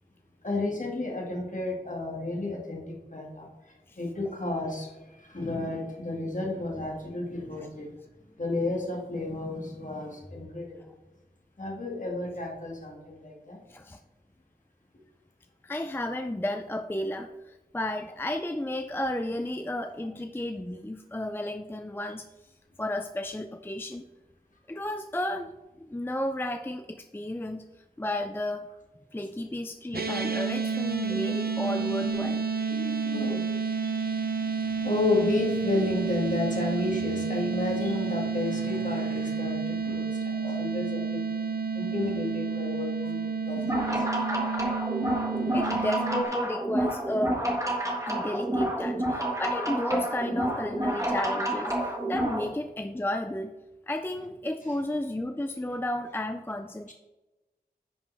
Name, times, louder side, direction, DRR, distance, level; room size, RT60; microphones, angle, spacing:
voice 1, 0.4-7.9 8.4-10.9 11.6-13.6 31.1-31.2 31.4-31.6 32.0-32.1 32.8-33.5 33.8-41.2 41.7-44.1 45.6-45.9 50.6-51.1, left 2 dB, 50° left, -1 dB, 2.1 m, -32 dB
voice 2, 15.6-22.5 22.8-24.0 24.7-25.5 25.8-27.7 28.0-28.7 29.1-32.5 39.9-40.0 45.5-47.4 48.1-53.5 53.9-56.9, left 1 dB, 15° left, 7 dB, 0.4 m, -33 dB
sound 1, 29.9-46.2, right 5 dB, 65° right, 0.8 m, -30 dB
sound 2, 43.6-52.4, right 1 dB, 20° right, 1.7 m, -29 dB
10.0 x 5.3 x 3.5 m, 1.1 s
wide cardioid pair, 50°, 17 cm